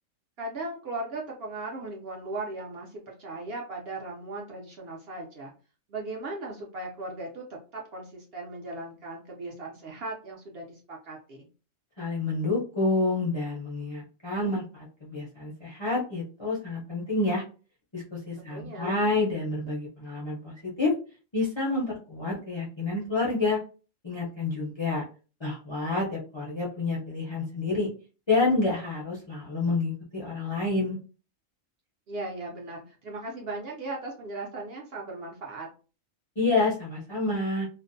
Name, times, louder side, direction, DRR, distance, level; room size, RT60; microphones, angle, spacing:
voice 1, 0.4-5.5 5.9-7.4 7.7-11.5 18.4-19.0 32.1-35.7, right 2 dB, 60° right, -2 dB, 0.7 m, -37 dB
voice 2, 12.0-17.4 17.9-20.9 21.3-23.6 24.0-25.0 25.4-27.9 28.3-31.0 36.4-37.7, left 3 dB, 35° left, -4 dB, 0.5 m, -28 dB
2.5 x 2.0 x 2.5 m, 0.36 s
omnidirectional pair, 1.4 m